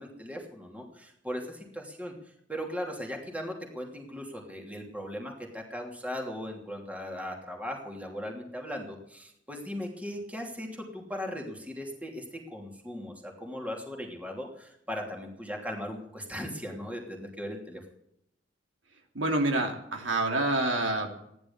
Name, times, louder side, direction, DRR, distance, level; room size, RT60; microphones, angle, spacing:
voice 1, 0.0-2.1 2.5-12.2 12.5-17.8, equal, 10° right, 1 dB, 2.9 m, -38 dB
voice 2, 19.1-21.1, right 2 dB, 85° right, 2 dB, 2.9 m, -27 dB
15.0 x 11.0 x 7.1 m, 0.77 s
head